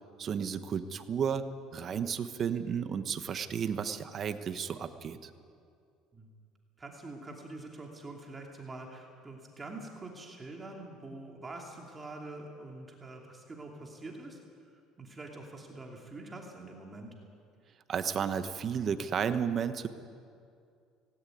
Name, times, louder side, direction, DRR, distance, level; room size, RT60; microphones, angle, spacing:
voice 1, 0.2-1.4 1.7-5.3 17.9-19.9, right 7 dB, 40° right, 10 dB, 1.2 m, -33 dB
voice 2, 6.8-14.4 14.7-17.1, right 2 dB, 20° right, 0 dB, 2.8 m, -45 dB
18.5 x 17.0 x 9.5 m, 2.3 s
cardioid pair, 125°, 0 cm